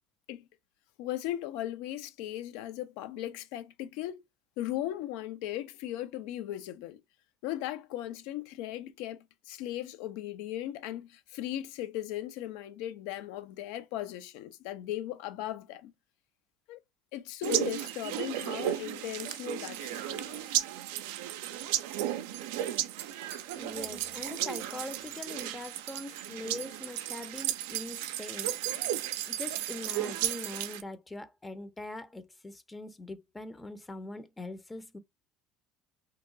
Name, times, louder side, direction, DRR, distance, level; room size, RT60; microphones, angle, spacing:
voice 1, 1.0-4.2 4.6-7.0 7.4-15.9 16.7-16.8 17.1-20.6, left 13 dB, 80° left, 0.5 m, -37 dB
sound 1, 17.4-30.8, right 12 dB, 90° right, 0.3 m, -34 dB
voice 2, 23.5-28.8 29.3-35.0, left 2 dB, 15° left, 0.5 m, -42 dB
2.8 x 2.2 x 3.7 m
supercardioid pair, 100°, 0 cm